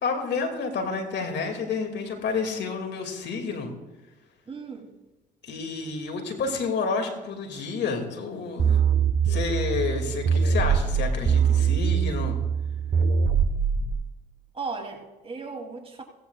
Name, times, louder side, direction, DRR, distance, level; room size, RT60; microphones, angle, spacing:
voice 1, 0.0-3.7 5.4-8.8 9.2-12.4, left 4 dB, 60° left, 4 dB, 2.4 m, -30 dB
voice 2, 4.5-4.9 14.5-16.0, right 4 dB, 30° right, 1 dB, 2.9 m, -36 dB
sound 1, 8.6-13.9, right 6 dB, 55° right, 1.2 m, -23 dB
16.5 x 15.5 x 2.4 m, 1.2 s
hypercardioid pair, 55°, 20 cm